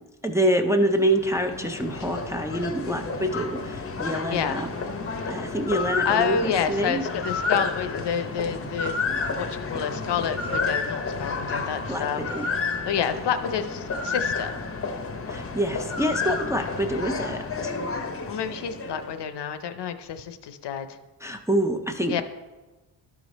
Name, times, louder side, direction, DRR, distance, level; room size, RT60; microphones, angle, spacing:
voice 1, 0.2-4.7 5.3-7.0 11.9-12.5 15.3-17.7 21.2-22.2, right 1 dB, 10° right, 4 dB, 0.4 m, -26 dB
sound 1, 0.8-19.2, left 4 dB, 35° left, 0.6 m, -31 dB
voice 2, 6.0-9.0 9.4-12.3 12.9-14.5 18.3-21.0 22.1-22.2, left 7 dB, 75° left, 10 dB, 0.7 m, -29 dB
12.0 x 5.0 x 4.1 m, 1.2 s
wide cardioid pair, 155°, 41 cm